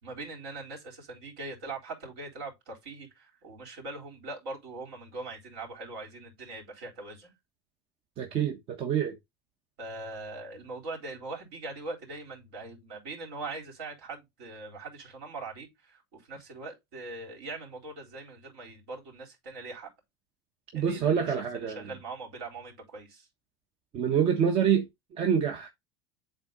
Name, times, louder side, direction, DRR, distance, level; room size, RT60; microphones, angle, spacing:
voice 1, 0.0-7.3 9.8-19.9 20.7-23.3, right 3 dB, 75° right, 4.0 m, -41 dB
voice 2, 8.2-9.1 20.7-21.8 23.9-25.7, right 8 dB, 45° right, 1.3 m, -26 dB
8.3 x 3.9 x 4.0 m
supercardioid pair, 115°, 13 cm